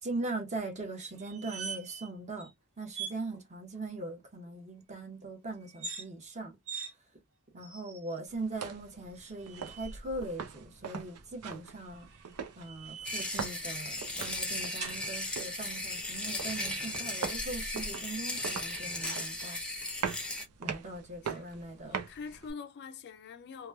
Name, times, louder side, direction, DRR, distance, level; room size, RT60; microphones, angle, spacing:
voice 1, 0.0-2.5 2.8-6.6 7.5-12.1 12.6-19.6 20.6-22.0, right 2 dB, 30° right, 0.9 m, -40 dB
sound 1, 1.2-2.1 2.4-2.5 2.9-3.2 5.7-6.1 6.7-6.9 7.6-8.2 9.1-10.0 11.8-13.5 14.8-15.0, right 5 dB, 65° right, 1.4 m, -43 dB
sound 2, 8.3-22.5, right 6 dB, 85° right, 0.6 m, -42 dB
sound 3, 13.0-20.4, left 1 dB, 5° left, 0.6 m, -36 dB
voice 2, 21.8-23.7, left 5 dB, 50° left, 0.4 m, -45 dB
2.9 x 2.2 x 2.2 m
head